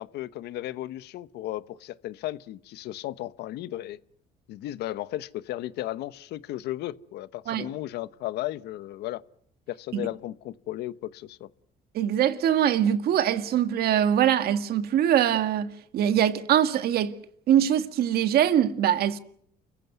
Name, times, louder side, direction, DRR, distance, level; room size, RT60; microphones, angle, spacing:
voice 1, 0.0-4.0 4.5-9.2 9.7-11.5, left 14 dB, 80° left, 1.0 m, -35 dB
voice 2, 11.9-17.2 17.5-19.2, right 10 dB, 65° right, 1.7 m, -23 dB
29.5 x 15.5 x 9.4 m
cardioid pair, 110°, 17 cm